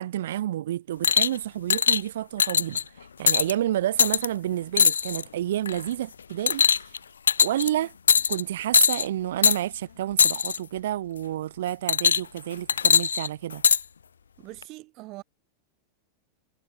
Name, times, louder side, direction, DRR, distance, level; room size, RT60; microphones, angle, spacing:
voice 1, 0.0-2.8 3.2-6.8 7.4-7.9 8.3-13.6, right 12 dB, 60° right, 2.6 m, -29 dB
sound 1, 1.0-1.4 1.7-2.0 2.4-2.8 3.3-3.5 4.0-4.3 4.8-5.2 5.7-5.9 6.5-7.0 7.3-7.7 8.1-8.4 8.7-9.1 9.4-9.6 10.2-10.6 11.9-12.4 12.7-13.8 14.6-14.7, left 6 dB, 70° left, 0.4 m, -20 dB
voice 2, 14.4-15.2, right 21 dB, 40° right, 2.4 m, -42 dB
figure-of-eight pair, 90°, 0 cm